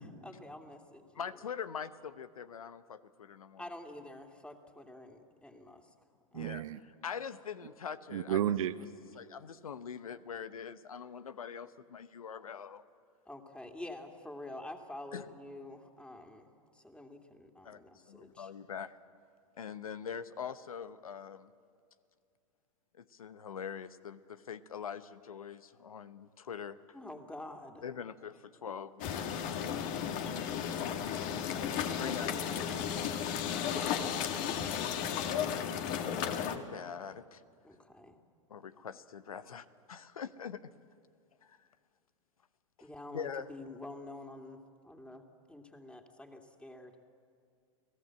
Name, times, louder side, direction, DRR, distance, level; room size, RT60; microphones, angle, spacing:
voice 1, 0.2-1.1 3.6-5.9 6.3-6.8 13.3-18.5 26.9-27.8 31.5-32.8 33.7-34.1 37.6-38.2 42.8-45.2 45.5-46.9, left 1 dB, 5° left, 2.5 m, -48 dB
voice 2, 1.1-3.7 6.3-8.4 9.1-12.8 15.1-15.3 17.6-17.8 18.1-19.0 19.6-21.5 22.9-26.8 27.8-29.9 32.0-32.7 35.2-37.4 38.5-40.7 41.4-41.7 42.8-42.9 43.1-43.5, left 7 dB, 85° left, 0.9 m, -43 dB
voice 3, 6.3-6.8 8.1-8.7, right 11 dB, 70° right, 0.9 m, -31 dB
sound 1, 29.0-36.6, left 8 dB, 45° left, 1.8 m, -34 dB
29.5 x 18.0 x 7.7 m
hypercardioid pair, 100°, 18 cm